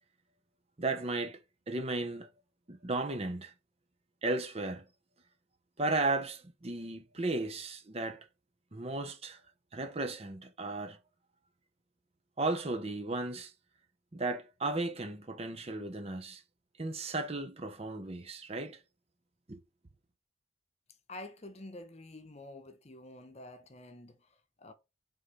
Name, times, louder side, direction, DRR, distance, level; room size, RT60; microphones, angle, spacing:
voice 1, 0.8-1.4 1.7-2.3 2.7-3.5 4.2-4.9 5.8-8.3 8.7-9.4 9.7-11.0 12.4-13.5 14.1-16.4 16.8-18.8 19.5-19.6, right 2 dB, 30° right, 0.8 m, -35 dB
voice 2, 21.1-24.7, left 2 dB, 35° left, 0.9 m, -48 dB
5.0 x 3.8 x 5.5 m
head